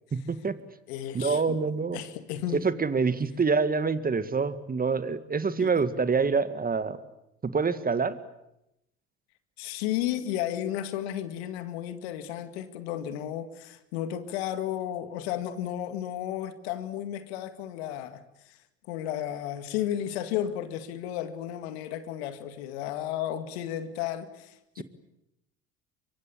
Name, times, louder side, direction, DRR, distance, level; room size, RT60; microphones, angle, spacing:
voice 1, 0.1-0.6 1.1-2.0 2.5-7.0 7.4-8.2 24.8-24.9, right 5 dB, 25° right, 2.0 m, -26 dB
voice 2, 0.9-1.6 1.9-2.6 5.6-5.7 9.6-18.6 18.9-24.8, left 11 dB, 75° left, 2.0 m, -33 dB
24.5 x 24.0 x 8.7 m
hypercardioid pair, 60°, 32 cm